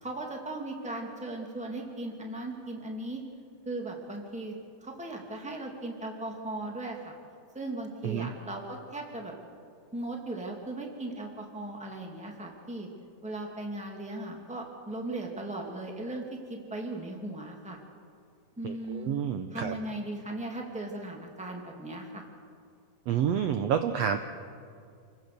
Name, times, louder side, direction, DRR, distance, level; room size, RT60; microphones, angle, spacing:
voice 1, 0.0-3.2 3.7-4.6 4.8-7.1 7.5-9.3 9.9-12.9 13.2-17.8 18.6-19.1 19.5-22.2, right 2 dB, 5° right, 1 dB, 1.9 m, -37 dB
voice 2, 18.6-19.7 23.1-24.2, right 8 dB, 75° right, 8 dB, 1.6 m, -29 dB
28.0 x 16.0 x 6.8 m, 2.3 s
omnidirectional pair, 3.6 m